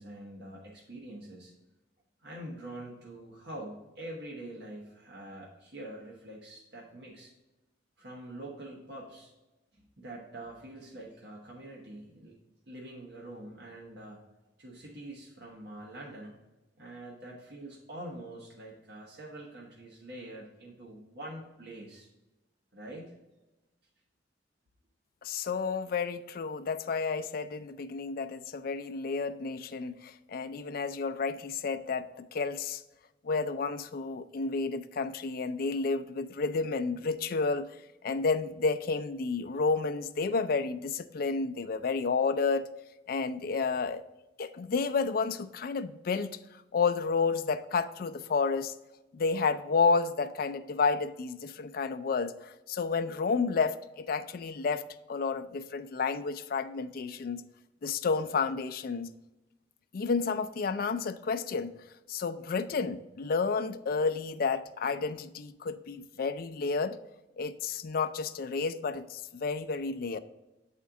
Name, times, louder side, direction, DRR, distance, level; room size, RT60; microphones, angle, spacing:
voice 1, 0.0-1.5 2.2-7.3 8.0-9.3 9.7-12.4 12.7-14.2 14.6-16.3 16.8-22.1 22.7-23.1, right 1 dB, 65° right, -3 dB, 1.2 m, -45 dB
voice 2, 25.2-32.8 33.2-37.7 38.0-42.7 43.1-44.0 44.4-46.4 46.7-48.7 49.1-54.8 55.1-57.4 57.8-59.1 59.9-61.7 62.1-67.0 67.4-70.2, left 4 dB, 55° left, 12 dB, 0.4 m, -31 dB
8.2 x 4.3 x 3.6 m, 1.0 s
head